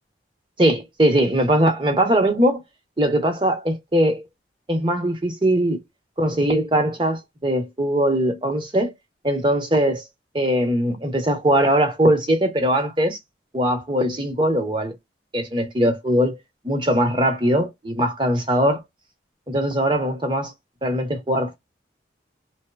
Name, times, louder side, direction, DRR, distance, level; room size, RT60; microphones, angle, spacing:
voice 1, 0.6-2.6 3.0-4.2 4.7-5.8 6.2-8.9 9.2-10.0 10.3-13.2 13.5-14.9 15.3-16.4 16.6-18.8 19.5-20.5 20.8-21.6, right 1 dB, 25° right, 0.8 m, -20 dB
3.0 x 2.0 x 2.3 m
head